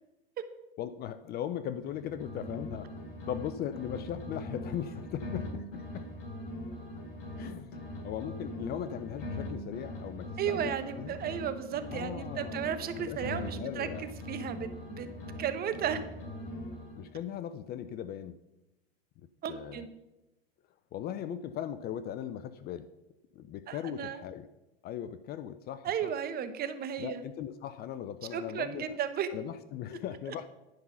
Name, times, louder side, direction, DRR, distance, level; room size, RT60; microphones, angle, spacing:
voice 1, 0.8-2.9 3.3-6.1 7.4-11.2 11.9-12.7 13.0-14.1 17.0-18.4 19.5-19.8 20.9-22.9 23.4-24.5 24.8-26.1 27.0-29.0 29.3-30.5, left 10 dB, 30° left, 13 dB, 0.4 m, -38 dB
sound 1, 1.8-3.5 3.7-7.5 7.7-11.5 11.7-15.5 15.7-17.1, left 1 dB, 50° left, 3.6 m, -41 dB
voice 2, 10.4-15.1 15.4-16.0 19.4-19.9 23.7-24.2 25.8-27.2 28.3-29.3 30.3-30.4, right 8 dB, 30° right, 11 dB, 0.9 m, -34 dB
10.5 x 5.5 x 5.9 m, 0.98 s
hypercardioid pair, 105°, 32 cm